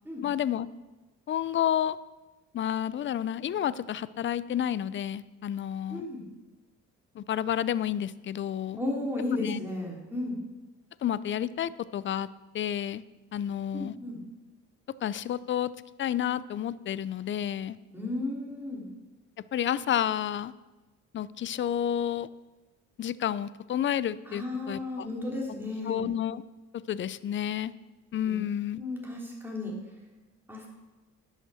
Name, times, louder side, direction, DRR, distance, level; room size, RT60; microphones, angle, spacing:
voice 1, 0.2-0.7 1.3-2.0 2.5-6.1 7.2-8.8 9.4-9.6 11.0-12.3 12.5-13.0 13.3-14.0 15.0-15.7 16.0-17.8 19.5-20.5 21.1-22.3 23.0-25.1 25.9-26.4 26.9-27.7 28.1-28.8, left 10 dB, 40° left, 18 dB, 0.4 m, -30 dB
voice 2, 5.9-6.2 8.8-10.4 13.7-14.2 17.9-18.9 24.2-26.1 28.3-28.4 28.8-29.7 30.5-30.7, left 2 dB, 5° right, -2 dB, 3.4 m, -34 dB
11.0 x 6.6 x 6.3 m, 1.2 s
cardioid pair, 90°, 30 cm